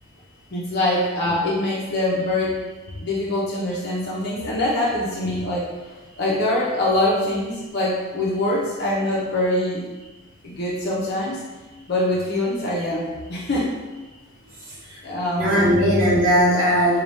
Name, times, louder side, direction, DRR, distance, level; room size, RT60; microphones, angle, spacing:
voice 1, 0.5-2.5 2.9-5.7 6.2-9.9 10.4-11.4 11.9-13.7 15.0-15.7, left 1 dB, 50° left, -5 dB, 0.6 m, -24 dB
voice 2, 14.6-15.0 15.3-17.0, equal, 65° right, -7 dB, 1.0 m, -19 dB
4.0 x 2.3 x 3.3 m, 1.2 s
head